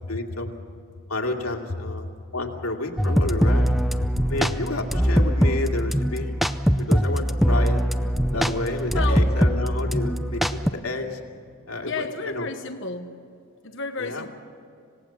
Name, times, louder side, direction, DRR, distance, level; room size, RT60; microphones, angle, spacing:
voice 1, 0.1-0.6 1.1-2.1 2.3-3.7 4.3-6.3 6.8-7.8 8.3-11.2 11.7-12.5 14.0-14.3, left 2 dB, 80° left, 2 dB, 2.5 m, -30 dB
sound 1, 3.0-10.7, equal, ahead, 0.5 m, -22 dB
voice 2, 8.9-9.4 11.9-13.2 13.6-14.3, left 4 dB, 55° left, 5 dB, 1.2 m, -32 dB
27.0 x 18.0 x 7.2 m, 2.4 s
head